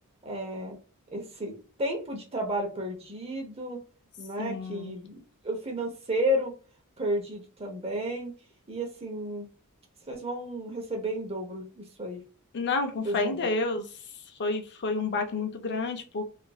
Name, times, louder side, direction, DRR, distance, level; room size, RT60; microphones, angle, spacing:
voice 1, 0.2-0.8 1.1-1.5 1.8-3.8 4.2-6.5 7.0-8.3 8.7-9.5 10.1-12.2 13.0-13.5, equal, 25° right, 1 dB, 0.7 m, -32 dB
voice 2, 4.4-5.0 12.5-13.9 14.4-16.2, left 3 dB, 50° left, 5 dB, 0.5 m, -30 dB
3.0 x 2.5 x 2.3 m, 0.38 s
head